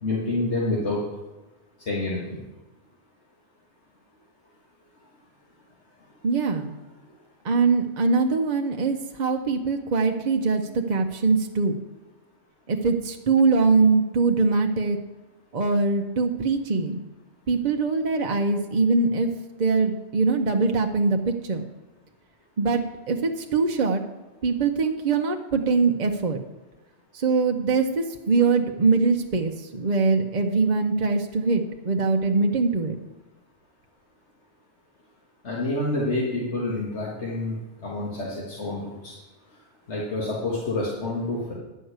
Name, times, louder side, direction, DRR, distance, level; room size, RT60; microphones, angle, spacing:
voice 1, 0.0-1.0 1.9-2.4 35.4-37.6 37.8-39.1 39.9-41.5, left 2 dB, 85° left, -5 dB, 2.1 m, -28 dB
voice 2, 6.2-6.7 7.4-11.7 12.7-15.0 15.5-17.0 17.5-19.3 19.6-21.6 22.6-24.0 24.4-26.4 27.1-33.0, right 4 dB, 45° right, 3 dB, 0.8 m, -22 dB
10.5 x 5.5 x 8.0 m, 1.1 s
omnidirectional pair, 1.2 m